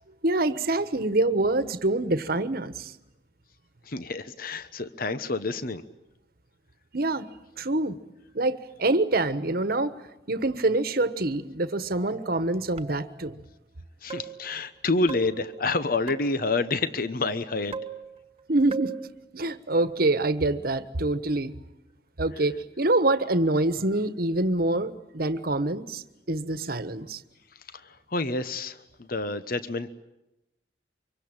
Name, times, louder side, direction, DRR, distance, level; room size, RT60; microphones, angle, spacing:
voice 1, 0.2-2.9 6.9-7.3 7.6-8.0 8.3-9.9 10.3-13.4 18.5-18.9 19.3-21.5 22.2-27.2, right 2 dB, 55° right, 12 dB, 1.3 m, -25 dB
voice 2, 3.9-5.8 14.0-17.8 27.7-29.9, left 3 dB, 55° left, 13 dB, 1.1 m, -28 dB
sound 1, 11.9-12.3 12.8-13.4 14.1-14.5 15.1-16.5 17.7-18.4 18.7-19.1, right 5 dB, 35° right, 1.4 m, -39 dB
25.0 x 23.5 x 8.9 m, 0.91 s
head